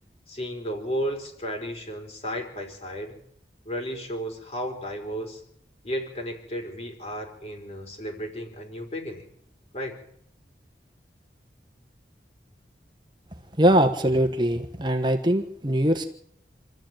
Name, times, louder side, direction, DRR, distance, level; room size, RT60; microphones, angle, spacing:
voice 1, 0.3-3.2 3.6-5.4 5.8-9.2 9.7-10.0, equal, 35° left, 3 dB, 4.5 m, -33 dB
voice 2, 13.6-16.1, right 1 dB, 25° right, 6 dB, 1.3 m, -22 dB
27.0 x 13.5 x 9.1 m, 0.69 s
head